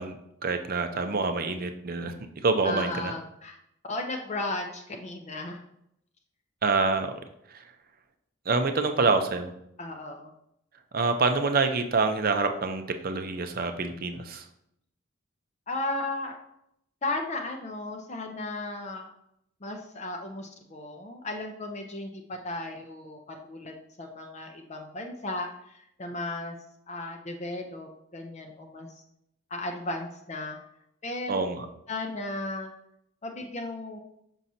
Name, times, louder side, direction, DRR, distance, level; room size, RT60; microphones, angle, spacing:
voice 1, 0.0-3.1 6.6-7.2 7.5-7.7 8.5-9.5 10.9-14.5 31.3-31.7, right 4 dB, 45° right, 6 dB, 0.6 m, -27 dB
voice 2, 2.6-3.6 3.9-5.6 9.8-10.3 15.7-16.4 17.0-19.1 19.6-26.6 26.9-29.0 29.5-30.6 31.0-31.5 31.9-32.7 33.2-34.0, left 2 dB, 35° left, 3 dB, 0.5 m, -35 dB
6.1 x 5.7 x 2.7 m, 0.76 s
head